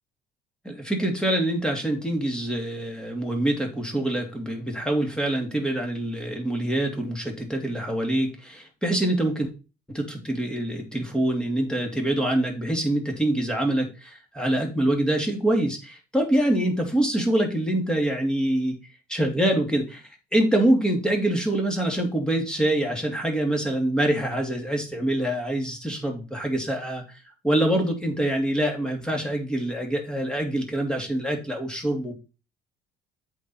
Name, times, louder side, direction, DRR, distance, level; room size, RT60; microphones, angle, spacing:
voice 1, 0.6-9.5 9.9-18.8 19.1-20.0 20.3-27.0 27.4-32.2, right 1 dB, 5° left, 2 dB, 2.8 m, -25 dB
7.9 x 4.7 x 5.5 m, 0.31 s
cardioid pair, 110°, 17 cm